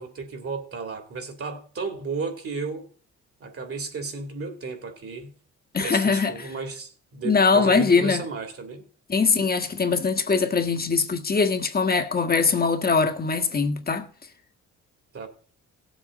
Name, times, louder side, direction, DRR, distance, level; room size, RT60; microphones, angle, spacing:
voice 1, 0.0-2.9 3.4-5.3 5.8-8.8 15.1-15.3, right 4 dB, 50° right, 3.0 m, -33 dB
voice 2, 5.7-6.5 7.2-8.2 9.1-14.1, left 4 dB, 30° left, 1.5 m, -22 dB
17.5 x 7.6 x 4.0 m
cardioid pair, 90°, 30 cm